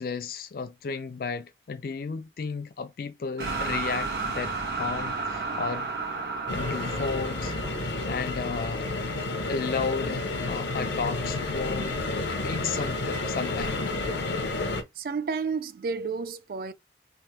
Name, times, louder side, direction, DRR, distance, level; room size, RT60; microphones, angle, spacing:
voice 1, 0.0-5.9 6.5-7.5 8.0-8.9 9.5-13.9, left 5 dB, 55° left, 0.3 m, -33 dB
sound 1, 3.4-9.4, right 3 dB, 75° right, 1.2 m, -33 dB
sound 2, 6.5-14.8, left 2 dB, 90° left, 0.7 m, -30 dB
voice 2, 15.0-16.7, right 5 dB, 55° right, 0.3 m, -31 dB
3.4 x 2.1 x 2.8 m
head